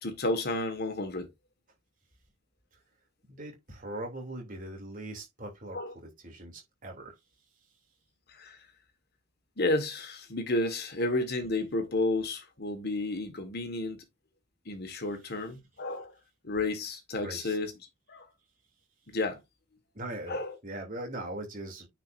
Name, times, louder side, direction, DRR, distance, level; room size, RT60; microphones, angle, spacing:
voice 1, 0.0-1.3 5.7-5.9 8.3-8.6 9.6-14.0 14.7-16.1 16.4-17.7 18.1-18.3 19.1-19.4 20.3-20.5, left 2 dB, 50° left, 1.7 m, -31 dB
voice 2, 3.3-7.2 17.2-17.6 19.9-21.9, right 1 dB, 40° right, 3.0 m, -41 dB
9.3 x 5.0 x 2.6 m
head